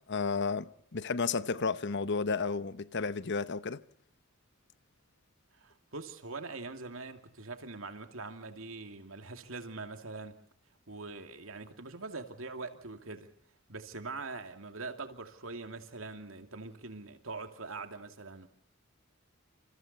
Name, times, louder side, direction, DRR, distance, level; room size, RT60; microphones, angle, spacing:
voice 1, 0.0-3.8, left 4 dB, 60° left, 1.0 m, -32 dB
voice 2, 5.5-10.4 10.9-13.3 13.7-18.5, right 3 dB, 75° right, 2.6 m, -43 dB
29.0 x 27.5 x 4.3 m
head